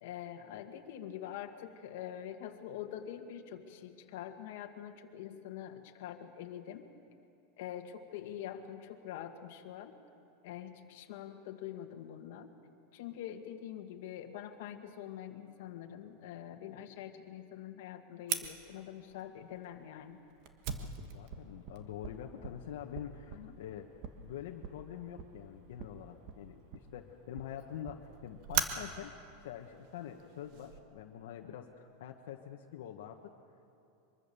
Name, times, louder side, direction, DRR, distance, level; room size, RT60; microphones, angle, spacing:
voice 1, 0.0-6.9 7.6-9.9 10.4-12.5 12.9-20.2 23.3-23.6, left 10 dB, 60° left, 5 dB, 1.7 m, -45 dB
Fire, 18.3-30.8, right 7 dB, 40° right, 1.4 m, -42 dB
voice 2, 20.7-23.9 24.2-29.1 29.4-33.3, left 10 dB, 75° left, 2 dB, 1.3 m, -45 dB
23.5 x 23.5 x 7.0 m, 2.7 s
supercardioid pair, 175°, 0 cm